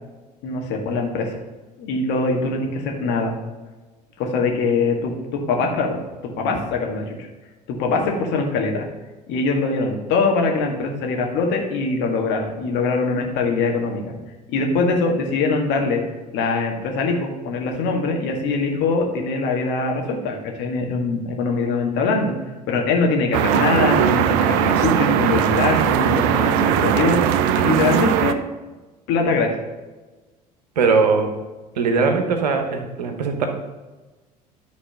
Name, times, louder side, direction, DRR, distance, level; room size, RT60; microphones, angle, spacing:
voice 1, 0.4-1.4 1.8-3.3 4.2-6.0 6.4-7.2 7.7-8.8 9.3-14.1 14.5-16.0 16.3-22.3 22.7-27.2 27.6-28.4 29.1-29.5, left 3 dB, 60° left, 1 dB, 1.8 m, -22 dB
sound 1, 23.3-28.3, right 9 dB, 60° right, 0.6 m, -19 dB
voice 2, 30.8-31.3 31.8-33.5, right 4 dB, 80° right, 5 dB, 1.1 m, -20 dB
11.0 x 4.2 x 5.6 m, 1.2 s
hypercardioid pair, 65°, 21 cm